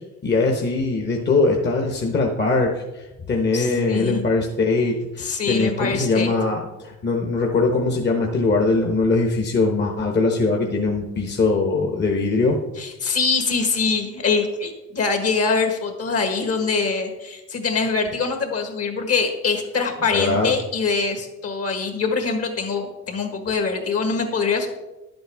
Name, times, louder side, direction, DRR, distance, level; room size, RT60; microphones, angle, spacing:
voice 1, 0.2-12.6 20.1-20.5, left 3 dB, 35° left, 1 dB, 1.1 m, -21 dB
voice 2, 3.5-4.2 5.2-6.3 12.8-24.7, left 4 dB, 55° left, 5 dB, 1.7 m, -24 dB
10.5 x 7.9 x 3.5 m, 1.1 s
cardioid pair, 90°, 30 cm